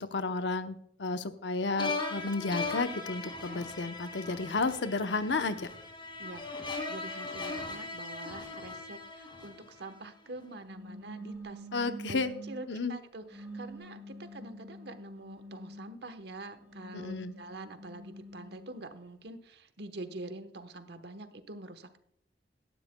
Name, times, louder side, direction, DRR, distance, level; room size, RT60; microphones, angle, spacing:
voice 1, 0.0-5.7 11.7-12.3 12.7-12.9 16.9-17.3, left 3 dB, 80° left, 9 dB, 0.8 m, -32 dB
sound 1, 1.8-10.0, left 3 dB, 30° left, 2.4 m, -39 dB
voice 2, 6.2-11.7 12.1-12.2 12.5-22.0, right 2 dB, 65° right, 9 dB, 1.1 m, -45 dB
sound 2, 10.6-12.7 13.3-16.0 16.6-18.8, right 1 dB, 10° right, 3.1 m, -46 dB
17.0 x 12.5 x 2.2 m, 0.68 s
head